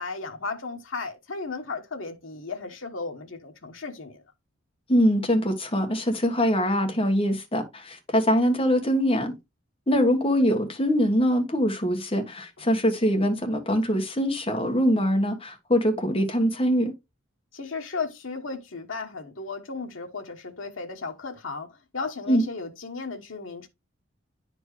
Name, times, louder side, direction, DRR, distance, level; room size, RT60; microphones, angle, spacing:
voice 1, 0.0-4.2 17.5-23.7, left 4 dB, 75° left, 1.2 m, -35 dB
voice 2, 4.9-9.3 9.9-16.9 22.3-22.4, equal, 30° left, 1.4 m, -23 dB
9.7 x 4.5 x 3.2 m
head